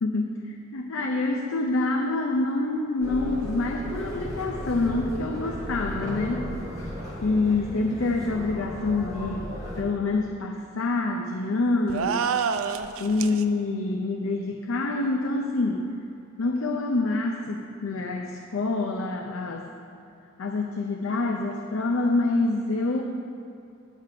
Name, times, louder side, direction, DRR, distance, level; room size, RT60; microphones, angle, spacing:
voice 1, 0.0-6.5 6.8-6.9 7.2-12.2 13.0-15.9 16.4-19.7 20.4-23.0, left 2 dB, 80° left, 3 dB, 0.6 m, -26 dB
sound 1, 3.0-9.8, equal, 20° right, 1.9 m, -35 dB
sound 2, 11.9-13.4, right 6 dB, 85° right, 0.4 m, -27 dB
8.9 x 7.4 x 4.9 m, 2.6 s
head